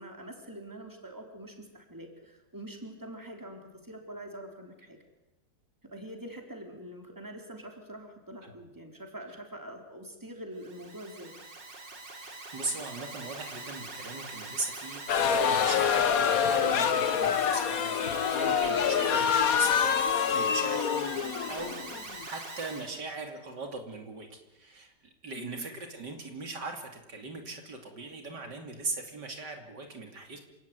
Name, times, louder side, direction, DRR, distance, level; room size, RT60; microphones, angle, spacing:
voice 1, 0.0-5.0 5.8-11.3 25.4-25.6, right 1 dB, 10° right, 3 dB, 3.9 m, -44 dB
Alarm, 10.6-22.9, right 2 dB, 90° right, 4.2 m, -43 dB
voice 2, 12.2-20.0 20.3-21.2 21.5-24.9 25.2-30.4, right 3 dB, 70° right, 4 dB, 3.4 m, -39 dB
sound 1, 15.1-22.2, left 7 dB, 55° left, 1.5 m, -26 dB
27.5 x 17.5 x 9.5 m, 0.98 s
omnidirectional pair, 1.9 m